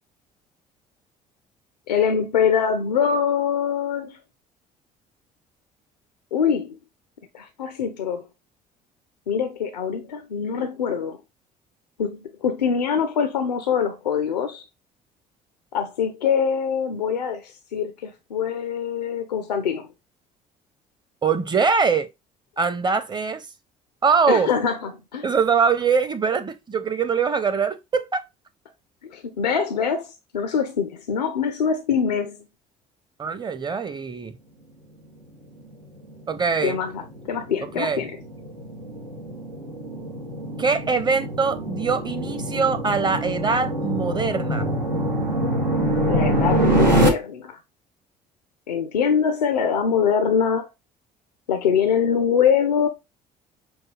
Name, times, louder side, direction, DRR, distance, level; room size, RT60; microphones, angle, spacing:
voice 1, 1.9-4.2 6.3-6.8 7.3-8.2 9.3-11.2 12.0-14.6 15.7-19.9 24.3-25.3 29.0-32.4 36.6-38.2 46.1-47.6 48.7-50.7 51.5-52.9, left 7 dB, 80° left, 0.5 m, -23 dB
voice 2, 21.2-22.1 22.6-23.5 24.0-24.5 25.2-28.2 33.2-34.3 36.3-36.8 37.8-38.1 40.6-44.7, right 5 dB, 20° right, 0.7 m, -23 dB
sound 1, 36.0-47.1, right 1 dB, 90° right, 0.7 m, -25 dB
6.1 x 2.2 x 3.1 m
figure-of-eight pair, 55°, 21 cm